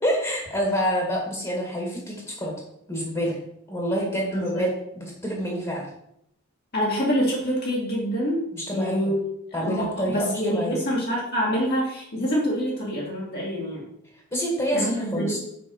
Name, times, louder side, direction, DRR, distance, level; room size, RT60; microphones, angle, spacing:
voice 1, 0.0-2.5 2.9-3.4 3.7-4.7 4.9-5.9 8.5-9.1 9.5-10.8 14.3-15.4, equal, 20° left, -2 dB, 2.1 m, -27 dB
voice 2, 4.3-4.7 6.7-8.4 8.7-9.2 9.6-13.8 14.7-15.4, equal, 50° left, -5 dB, 2.5 m, -26 dB
6.7 x 5.7 x 5.5 m, 0.76 s
head